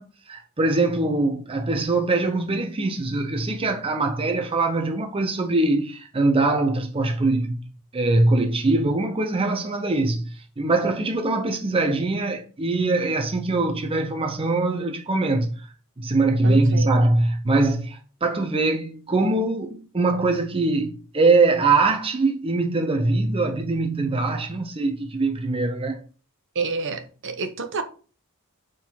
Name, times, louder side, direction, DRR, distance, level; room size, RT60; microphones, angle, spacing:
voice 1, 0.0-7.6 7.9-15.7 16.0-26.0, right 2 dB, 25° right, 0.6 m, -22 dB
voice 2, 16.4-16.9 26.5-27.8, right 4 dB, 55° right, 1.0 m, -29 dB
7.0 x 3.8 x 5.7 m
head